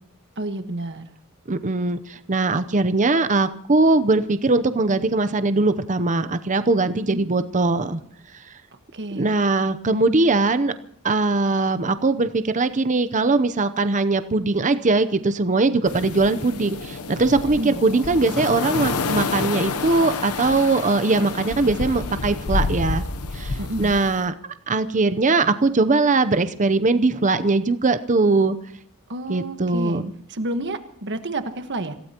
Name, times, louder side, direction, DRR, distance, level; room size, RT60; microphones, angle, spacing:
voice 1, 0.4-1.1 7.0-7.3 8.9-9.4 17.5-17.8 23.6-23.9 29.1-30.0 30.3-31.9, right 1 dB, 55° right, 8 dB, 1.4 m, -30 dB
voice 2, 1.5-8.0 9.1-10.7 11.0-23.0 23.3-24.3 24.7-28.6 29.3-30.1, right 3 dB, 35° right, 11 dB, 0.7 m, -21 dB
sound 1, 15.8-24.2, left 3 dB, 75° left, 0.9 m, -29 dB
27.0 x 16.5 x 3.0 m, 0.64 s
head